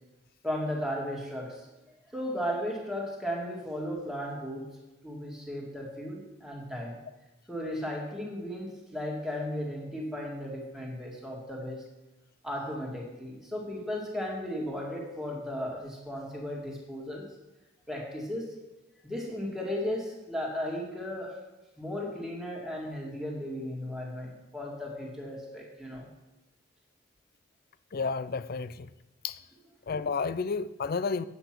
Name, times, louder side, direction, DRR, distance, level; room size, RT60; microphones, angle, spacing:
voice 1, 0.4-4.7 5.0-7.0 7.5-11.8 12.4-17.3 17.9-18.6 19.0-21.4 21.8-26.1, equal, ahead, -1 dB, 2.0 m, -35 dB
voice 2, 27.9-28.9 29.2-29.4 29.9-31.3, left 4 dB, 45° left, 15 dB, 0.4 m, -31 dB
8.9 x 8.1 x 6.0 m, 1.0 s
head